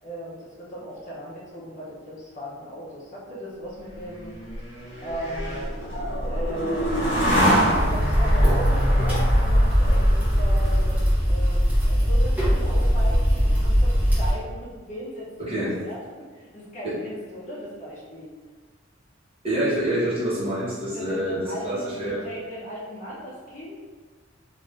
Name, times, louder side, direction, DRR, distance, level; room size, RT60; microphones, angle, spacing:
voice 1, 0.0-4.3 5.0-5.8 6.2-7.0 7.7-10.9 11.2-18.3 20.9-23.8, equal, 40° left, -8 dB, 0.7 m, -37 dB
sound 1, 3.9-11.3, equal, 65° left, 1.0 m, -25 dB
sound 2, 7.7-14.3, equal, 10° right, 0.9 m, -20 dB
voice 2, 15.4-15.8 16.8-17.0 19.4-22.2, right 1 dB, 30° right, -10 dB, 1.1 m, -27 dB
2.5 x 2.5 x 3.3 m, 1.5 s
head